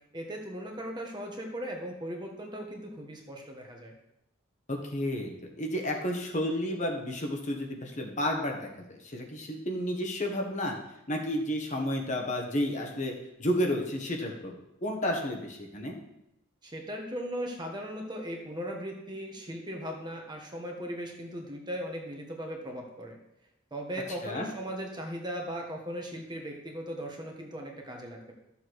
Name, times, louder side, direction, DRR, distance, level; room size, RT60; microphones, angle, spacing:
voice 1, 0.1-3.9 16.6-23.2 23.7-28.3, equal, 20° right, 1 dB, 1.4 m, -38 dB
voice 2, 4.7-5.3 5.6-10.7 11.1-13.1 13.4-14.5 14.8-16.0 24.2-24.5, left 1 dB, 35° left, 1 dB, 1.4 m, -31 dB
13.5 x 7.0 x 4.8 m, 0.87 s
head